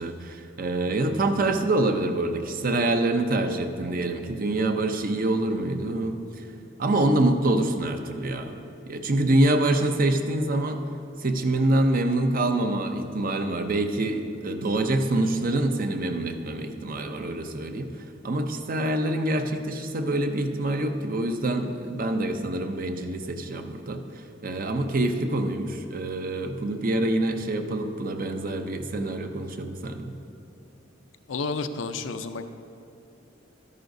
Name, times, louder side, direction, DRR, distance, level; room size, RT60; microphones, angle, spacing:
voice 1, 0.0-6.4 6.8-8.6 8.9-10.8 11.2-17.9 18.2-24.0 24.4-30.1, right 2 dB, 50° right, 6 dB, 0.6 m, -26 dB
voice 2, 31.3-32.5, left 3 dB, 75° left, 9 dB, 0.5 m, -31 dB
12.5 x 10.5 x 2.7 m, 2.7 s
head